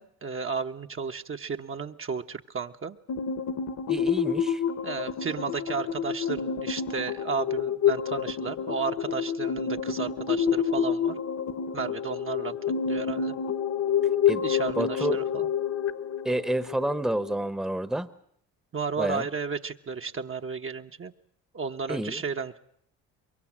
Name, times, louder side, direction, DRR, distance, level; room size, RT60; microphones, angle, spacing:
voice 1, 0.0-3.0 4.8-11.2 11.7-12.6 12.8-13.3 14.4-15.5 18.7-21.1 21.5-22.6, right 5 dB, 35° right, 5 dB, 1.1 m, -33 dB
sound 1, 3.1-17.5, left 7 dB, 50° left, 1.4 m, -28 dB
voice 2, 3.9-4.6 14.3-14.4 14.8-15.2 16.2-18.1 19.0-19.3 21.9-22.2, right 1 dB, ahead, 13 dB, 1.1 m, -29 dB
24.0 x 22.5 x 7.4 m, 0.68 s
supercardioid pair, 70°, 37 cm